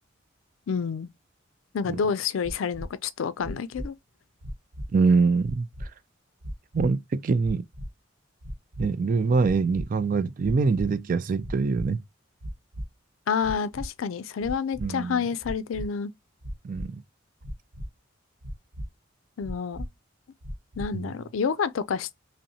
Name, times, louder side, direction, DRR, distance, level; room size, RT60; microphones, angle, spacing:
voice 1, 0.7-1.1 1.7-3.9 13.3-16.1 19.4-19.9 20.8-22.1, left 6 dB, 90° left, 0.4 m, -28 dB
sound 1, 2.4-2.9 3.4-3.9 4.4-4.9 5.4-5.9 6.4-6.9 7.4-7.9 8.4-8.9 9.4-9.9 10.4-10.9 11.4-11.9 12.4-12.9 13.4-13.9 14.4-14.9 15.4-15.9 16.4-16.9 17.4-17.9 18.4-18.9 19.4-19.9 20.4-20.9, equal, 75° right, 0.9 m, -35 dB
voice 2, 4.9-5.9 6.7-7.6 8.8-12.0 14.8-15.2 16.6-17.0 20.9-21.1, right 4 dB, 45° right, 0.3 m, -24 dB
5.3 x 2.1 x 2.7 m
head